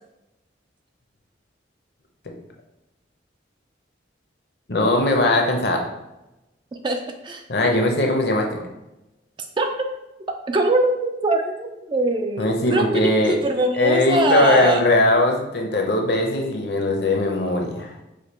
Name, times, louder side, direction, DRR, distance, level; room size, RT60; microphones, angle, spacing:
voice 1, 4.7-5.8 7.5-8.6 12.4-13.3 13.7-18.0, left 2 dB, 60° left, 2 dB, 0.7 m, -20 dB
voice 2, 6.8-7.4 9.6-9.7 10.5-14.8, right 2 dB, 25° right, 4 dB, 0.3 m, -22 dB
5.0 x 2.2 x 4.2 m, 0.94 s
head